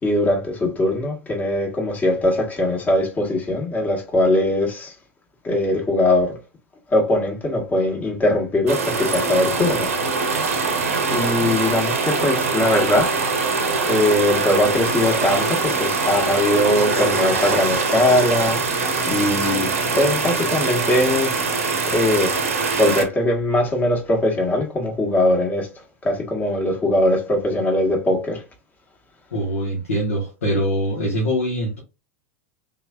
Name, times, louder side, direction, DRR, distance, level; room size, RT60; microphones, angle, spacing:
voice 1, 0.0-4.9 5.4-6.4 6.9-9.9 10.7-13.1 13.9-21.3 21.9-22.4 22.8-25.7 26.0-28.4, left 1 dB, 20° left, 1.3 m, -21 dB
sound 1, 8.7-23.0, right 4 dB, 70° right, 0.7 m, -23 dB
voice 2, 29.3-31.8, equal, 75° left, 1.1 m, -23 dB
3.4 x 3.0 x 2.2 m
figure-of-eight pair, 90°, 8 cm